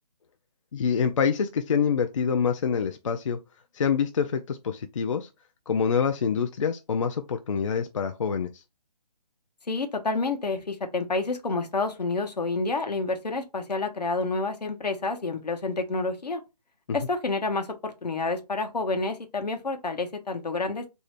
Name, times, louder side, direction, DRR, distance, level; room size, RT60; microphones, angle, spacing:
voice 1, 0.7-3.4 3.7-5.3 5.7-8.6, left 6 dB, 50° left, 0.4 m, -26 dB
voice 2, 9.7-16.4 16.9-20.9, left 3 dB, 75° left, 0.9 m, -29 dB
3.1 x 2.7 x 3.1 m
figure-of-eight pair, 150°, 21 cm